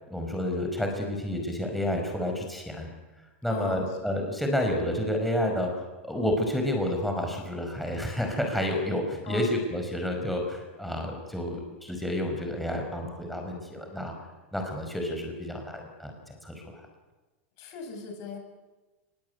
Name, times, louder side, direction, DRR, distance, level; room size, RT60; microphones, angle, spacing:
voice 1, 0.1-2.9 3.4-5.7 6.0-14.1 14.5-16.6, left 1 dB, ahead, 2 dB, 5.4 m, -30 dB
voice 2, 3.5-4.0 9.2-9.5 17.6-18.4, left 6 dB, 50° left, 4 dB, 7.9 m, -38 dB
23.0 x 21.5 x 9.6 m, 1.2 s
hypercardioid pair, 115°, 7 cm